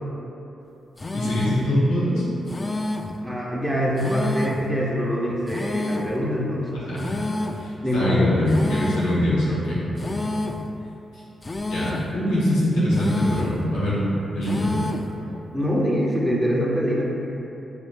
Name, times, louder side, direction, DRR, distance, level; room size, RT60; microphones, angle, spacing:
sound 1, 1.0-1.7 2.5-3.2 4.0-4.7 5.5-6.2 7.0-7.7 8.5-9.2 10.0-10.7 11.4-12.1 12.9-13.6 14.4-15.1, left 2 dB, 35° left, 0.3 m, -29 dB
voice 1, 1.1-2.2 6.7-7.2 7.5-10.2 11.7-14.0 14.3-14.8, left 1 dB, 85° left, -9 dB, 1.0 m, -23 dB
voice 2, 3.2-6.8 7.8-8.3 15.5-17.0, equal, 5° right, -5 dB, 1.1 m, -24 dB
7.0 x 2.7 x 2.3 m, 3.0 s
hypercardioid pair, 40°, 0 cm